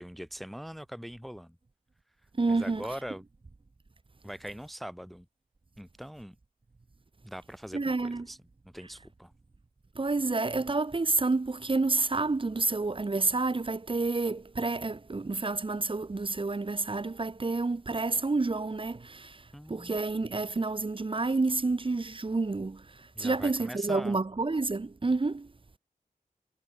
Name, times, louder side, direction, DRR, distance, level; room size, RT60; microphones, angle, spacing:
voice 1, 0.0-1.6 2.5-3.2 4.2-5.3 5.8-6.4 7.2-8.4 8.7-9.3 19.5-20.0 23.2-24.2, equal, ahead, 1.1 m, -42 dB
voice 2, 2.3-2.9 7.7-8.3 9.9-25.5, right 3 dB, 35° right, 1.7 m, -29 dB
wide cardioid pair, 90°, 15 cm